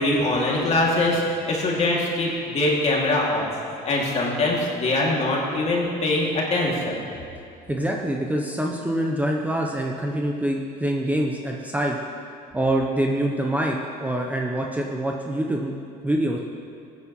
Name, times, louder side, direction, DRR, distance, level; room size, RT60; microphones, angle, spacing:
voice 1, 0.0-7.0, left 2 dB, 40° left, -3 dB, 2.5 m, -23 dB
voice 2, 7.7-12.0 12.5-15.7 16.0-16.4, right 1 dB, 10° right, 0 dB, 0.8 m, -25 dB
16.0 x 9.4 x 3.1 m, 2.5 s
cardioid pair, 100°, 18 cm